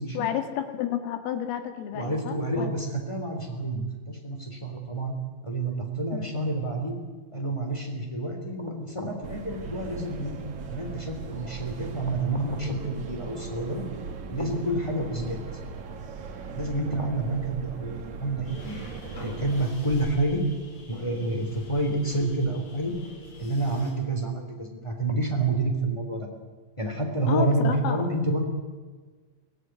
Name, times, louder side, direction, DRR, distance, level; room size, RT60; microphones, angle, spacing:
voice 1, 0.1-2.7 6.1-6.3 27.3-28.0, left 9 dB, 85° left, 7 dB, 4.5 m, -30 dB
voice 2, 1.9-5.1 5.4-6.9 7.3-10.3 10.7-13.9 14.3-15.4 16.5-18.9 19.2-20.4 20.9-22.9 23.4-26.3 26.8-28.4, right 2 dB, 10° left, 2 dB, 2.2 m, -28 dB
sound 1, 9.2-19.7, right 5 dB, 55° right, 2.2 m, -39 dB
sound 2, 18.5-23.9, right 1 dB, 70° left, 8.5 m, -43 dB
24.0 x 16.0 x 9.5 m, 1.4 s
omnidirectional pair, 5.7 m